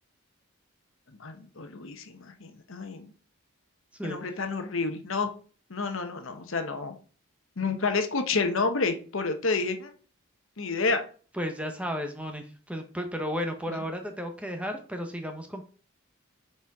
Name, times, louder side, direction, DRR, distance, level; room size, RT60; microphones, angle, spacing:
voice 1, 1.2-3.1 4.0-5.3 5.7-6.9 7.6-9.9 10.6-11.0, left 4 dB, 65° left, 7 dB, 1.0 m, -29 dB
voice 2, 4.0-4.4 6.0-6.1 11.3-15.6, equal, 5° right, 5 dB, 0.8 m, -34 dB
6.0 x 4.4 x 4.7 m, 0.39 s
head